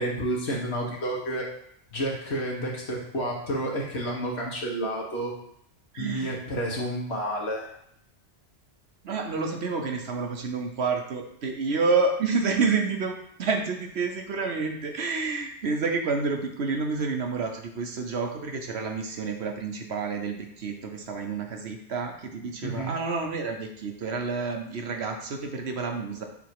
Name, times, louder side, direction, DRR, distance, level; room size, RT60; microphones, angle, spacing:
voice 1, 0.0-1.5 1.9-5.3 6.0-7.7 22.6-22.9, right 1 dB, 60° left, -2 dB, 1.7 m, -30 dB
voice 2, 5.9-6.4 9.0-26.2, right 4 dB, 60° right, 4 dB, 1.1 m, -29 dB
8.1 x 3.0 x 4.7 m, 0.70 s
omnidirectional pair, 1.3 m